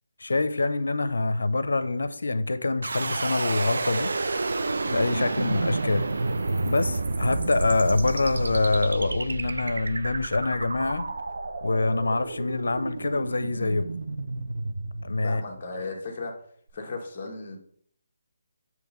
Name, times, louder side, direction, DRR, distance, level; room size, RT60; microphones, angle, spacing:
voice 1, 0.2-4.1 4.9-6.1 6.6-11.1 11.6-13.9 15.0-15.4, left 2 dB, 90° left, 0.6 m, -25 dB
sound 1, 2.8-15.8, right 3 dB, 75° right, 0.6 m, -30 dB
voice 2, 15.2-16.4 16.7-17.6, left 3 dB, 35° left, 1.3 m, -35 dB
7.8 x 3.0 x 5.1 m
hypercardioid pair, 170°, 0 cm